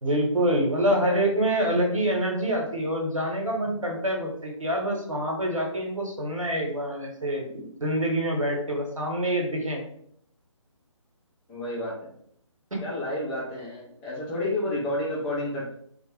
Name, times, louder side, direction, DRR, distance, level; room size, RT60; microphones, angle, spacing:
voice 1, 0.0-9.8 12.7-12.8, right 1 dB, 85° right, 1 dB, 1.0 m, -26 dB
voice 2, 11.5-12.1 12.8-15.7, left 1 dB, 5° left, -9 dB, 0.4 m, -30 dB
2.5 x 2.1 x 3.1 m, 0.66 s
figure-of-eight pair, 145°, 17 cm